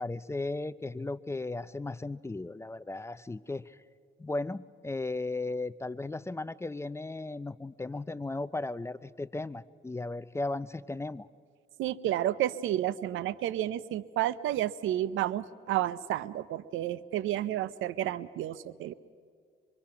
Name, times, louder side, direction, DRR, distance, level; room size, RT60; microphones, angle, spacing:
voice 1, 0.0-3.8 4.2-11.3, left 2 dB, 15° left, 16 dB, 0.5 m, -36 dB
voice 2, 11.8-18.9, right 13 dB, 85° right, 17 dB, 0.6 m, -31 dB
24.5 x 24.0 x 5.8 m, 2.1 s
cardioid pair, 90°, 20 cm